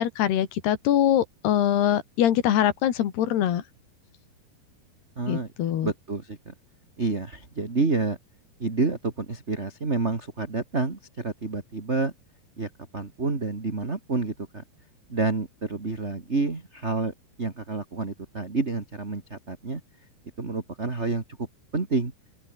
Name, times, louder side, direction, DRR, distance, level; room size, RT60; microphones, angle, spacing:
voice 1, 0.0-3.6 5.3-5.9, left 11 dB, 75° left, 4.2 m, -23 dB
voice 2, 5.2-5.5 5.8-6.5 7.0-8.2 8.6-12.1 12.6-14.6 15.1-19.8 20.4-21.2 21.7-22.1, right 3 dB, 25° right, 1.9 m, -29 dB
open air
omnidirectional pair, 4.7 m